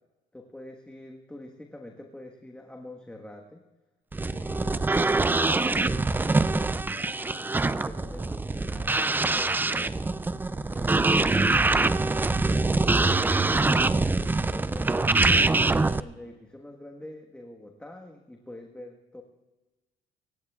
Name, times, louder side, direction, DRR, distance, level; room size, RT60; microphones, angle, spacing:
voice 1, 0.3-3.6 4.3-6.9 7.4-10.1 10.7-15.4 16.0-19.2, left 1 dB, 5° left, 1 dB, 1.4 m, -45 dB
sound 1, 4.1-16.0, right 3 dB, 10° right, 0.4 m, -24 dB
26.0 x 15.0 x 2.4 m, 1.1 s
cardioid pair, 110°, 17 cm